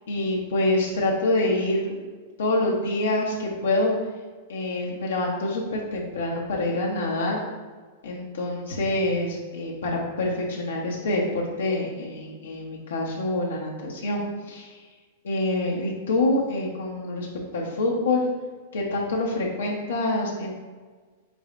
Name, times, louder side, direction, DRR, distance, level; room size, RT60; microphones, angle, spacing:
voice 1, 0.1-2.0 2.4-3.9 4.5-7.4 8.0-14.8 15.2-17.3 17.5-18.3 18.7-20.5, left 2 dB, 85° left, -2 dB, 0.7 m, -26 dB
4.7 x 4.0 x 2.5 m, 1.4 s
hypercardioid pair, 120°, 0 cm